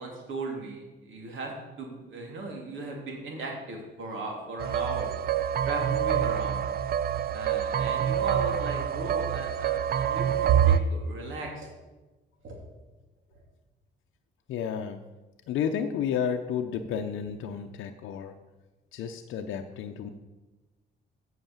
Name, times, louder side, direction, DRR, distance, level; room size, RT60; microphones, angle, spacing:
voice 1, 0.0-1.5 1.8-5.1 5.6-6.7 7.3-11.7 12.4-12.6 13.3-13.4, right 2 dB, 75° right, 0 dB, 2.7 m, -37 dB
sound 1, 4.6-10.8, right 9 dB, 50° right, 0.5 m, -26 dB
voice 2, 14.5-15.0 15.5-18.3 18.9-20.1, left 8 dB, 80° left, 5 dB, 0.6 m, -31 dB
7.9 x 5.9 x 7.2 m, 1.1 s
cardioid pair, 90°, 20 cm